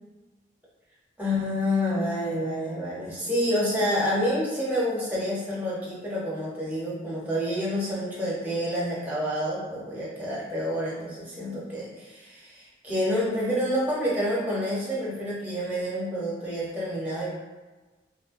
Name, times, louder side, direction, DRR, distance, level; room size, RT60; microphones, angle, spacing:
voice 1, 1.2-17.3, equal, 10° right, -7 dB, 0.6 m, -28 dB
2.9 x 2.1 x 2.5 m, 1.2 s
head